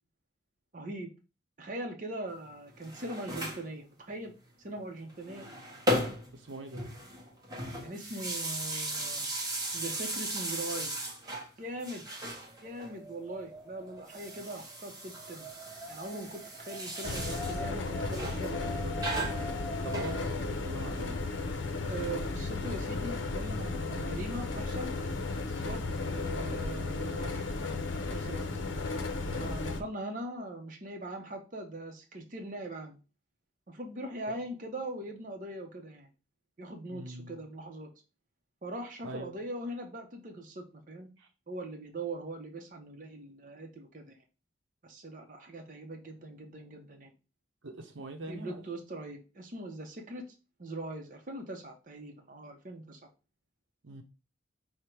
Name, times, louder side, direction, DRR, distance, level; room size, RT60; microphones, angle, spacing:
voice 1, 0.7-1.1 1.6-4.3 4.6-5.5 7.8-9.3 9.7-11.1 11.6-12.0 12.6-15.5 15.9-19.3 21.9-24.9 25.5-27.4 28.1-28.5 29.3-33.0 33.7-36.1 36.6-37.9 38.6-41.1 41.5-44.2 44.8-47.1 48.3-50.2 50.6-53.0, right 1 dB, 45° right, 0.7 m, -41 dB
sound 1, 2.7-3.7 5.1-6.4 6.7-11.5 11.8-12.9 14.0-17.6 18.1-18.5 19.0-20.6, equal, 20° right, 0.9 m, -36 dB
voice 2, 6.3-6.8 19.8-21.3 34.3-34.4 36.9-37.5 39.0-39.3 41.2-41.3 47.6-48.6 53.8-54.0, right 2 dB, 90° right, 0.8 m, -43 dB
Wind, 12.5-20.4, equal, 5° right, 0.5 m, -44 dB
sound 2, 17.0-29.8, left 3 dB, 85° left, 0.6 m, -34 dB
5.0 x 2.1 x 4.4 m
head